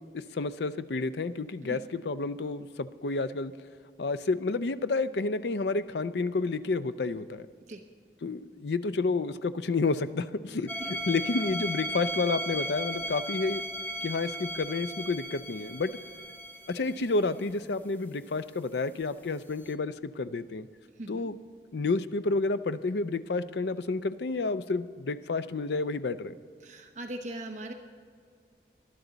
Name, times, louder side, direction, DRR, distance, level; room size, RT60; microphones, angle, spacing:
voice 1, 0.1-3.5 4.0-7.5 8.2-10.7 11.1-13.6 14.0-15.9 16.7-20.7 21.1-21.4 21.7-26.3, left 3 dB, 70° left, 12 dB, 0.5 m, -30 dB
sound 1, 10.7-17.3 19.6-19.7, equal, 10° left, 0.6 m, -36 dB
voice 2, 21.0-21.3 26.6-27.7, right 1 dB, 40° right, 4 dB, 0.8 m, -40 dB
20.0 x 11.5 x 4.0 m, 2.1 s
head